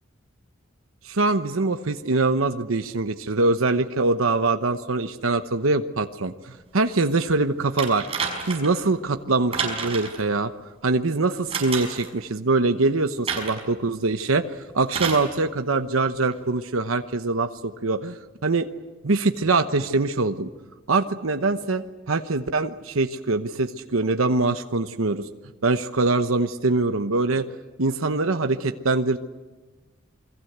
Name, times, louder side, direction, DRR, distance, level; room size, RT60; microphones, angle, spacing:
voice 1, 1.0-8.1 8.5-10.5 10.8-18.7 19.0-20.5 20.9-25.3 25.6-27.5 27.8-29.2, right 3 dB, 90° right, 8 dB, 1.0 m, -23 dB
sound 1, 7.8-8.8 9.5-10.2 11.5-12.1 13.3-13.7 14.9-15.3 16.3-16.4, right 5 dB, 30° right, 5.7 m, -29 dB
28.5 x 22.0 x 8.1 m, 1.2 s
head